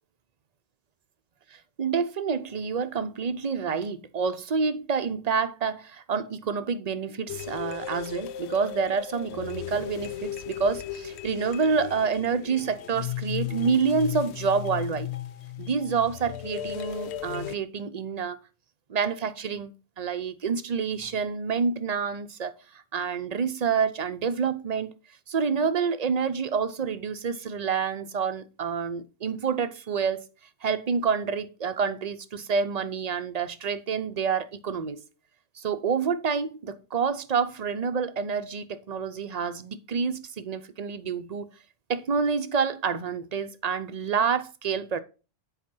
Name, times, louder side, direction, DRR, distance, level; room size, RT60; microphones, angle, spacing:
voice 1, 1.5-15.1 15.6-18.4 18.9-24.9 25.3-30.3 30.6-35.0 35.6-41.5 41.9-45.0, right 5 dB, 40° right, 0.6 m, -28 dB
sound 1, 7.3-17.6, left 12 dB, 70° left, 0.8 m, -36 dB
7.9 x 4.9 x 5.4 m
omnidirectional pair, 1.2 m